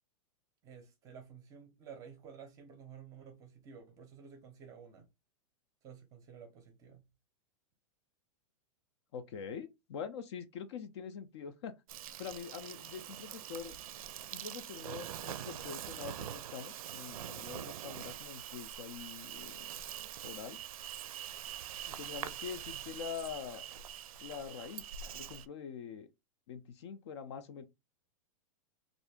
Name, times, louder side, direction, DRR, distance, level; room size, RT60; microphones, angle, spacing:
voice 1, 0.6-5.1 5.8-7.0, right 7 dB, 20° right, 0.6 m, -52 dB
voice 2, 9.1-11.8 12.2-13.8 14.3-19.7 20.2-20.6 21.9-23.6 24.2-26.1 26.5-27.6, left 7 dB, 50° left, 0.5 m, -44 dB
Insect, 11.9-25.5, right 10 dB, 80° right, 0.4 m, -44 dB
2.7 x 2.5 x 3.4 m
supercardioid pair, 170°, 18 cm